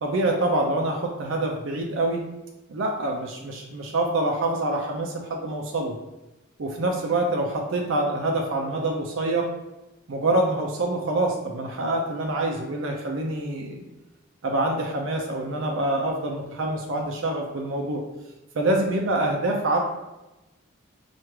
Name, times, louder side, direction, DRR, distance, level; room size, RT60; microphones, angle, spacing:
voice 1, 0.0-2.2 2.7-6.0 6.6-9.5 10.1-13.8 14.4-18.0 18.5-19.8, right 2 dB, 65° right, 0 dB, 0.5 m, -26 dB
4.5 x 2.4 x 3.1 m, 1.0 s
head